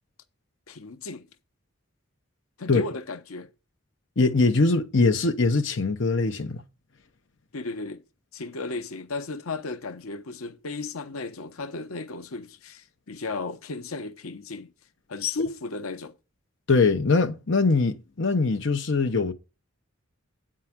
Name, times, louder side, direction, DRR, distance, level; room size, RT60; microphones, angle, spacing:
voice 1, 0.7-1.3 2.6-3.5 7.5-8.0 8.3-14.7 15.1-16.1, left 3 dB, 90° left, 0.9 m, -34 dB
voice 2, 4.2-6.6 16.7-19.3, left 3 dB, 60° left, 0.8 m, -22 dB
8.8 x 4.6 x 7.2 m
head